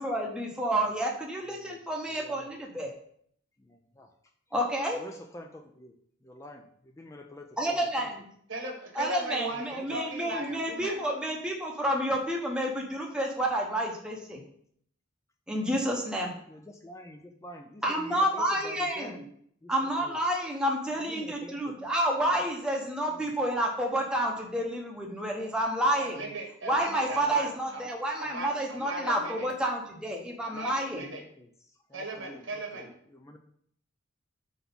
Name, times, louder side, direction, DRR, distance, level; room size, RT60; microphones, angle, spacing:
voice 1, 0.0-2.9 4.5-5.0 7.6-8.3 9.0-14.4 15.5-16.3 17.8-19.2 19.7-26.2 26.6-31.1, right 1 dB, 5° right, -1 dB, 0.7 m, -29 dB
voice 2, 1.5-1.8 2.1-2.5 3.6-4.1 4.9-6.0 6.2-8.1 9.5-10.0 10.3-10.4 15.7-15.8 16.1-19.2 19.6-20.2 20.9-21.7 23.1-23.2 27.1-27.5 31.1-31.5 31.9-33.4, left 1 dB, 15° left, 4 dB, 0.3 m, -48 dB
voice 3, 8.5-11.0 26.0-27.8 28.2-29.5 30.4-31.2 31.9-32.9, right 1 dB, 65° right, 2 dB, 1.3 m, -38 dB
4.5 x 4.0 x 5.4 m, 0.65 s
head